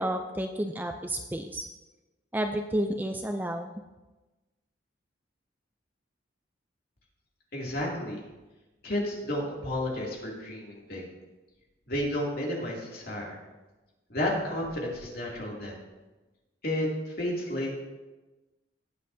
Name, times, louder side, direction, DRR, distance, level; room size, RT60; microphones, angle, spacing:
voice 1, 0.0-1.7 2.3-3.7, right 1 dB, 10° right, 5 dB, 0.4 m, -31 dB
voice 2, 7.5-8.2 8.8-11.0 11.9-13.4 14.1-15.7 16.6-17.7, left 1 dB, 50° left, -3 dB, 2.6 m, -31 dB
19.0 x 7.6 x 2.7 m, 1.1 s
head